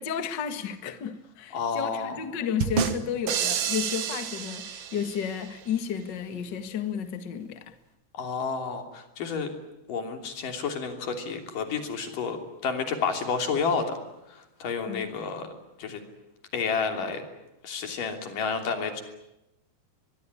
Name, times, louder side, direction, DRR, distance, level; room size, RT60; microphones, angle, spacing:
voice 1, 0.0-7.7 14.8-15.1, left 8 dB, 75° left, 1.0 m, -32 dB
voice 2, 1.5-2.2 8.1-9.5 9.9-12.4 12.6-14.0 14.6-15.5 15.8-16.0 16.5-17.2 17.6-19.0, left 5 dB, 50° left, 4.5 m, -30 dB
sound 1, 2.6-5.4, right 8 dB, 75° right, 1.3 m, -29 dB
23.5 x 22.5 x 9.9 m
omnidirectional pair, 5.0 m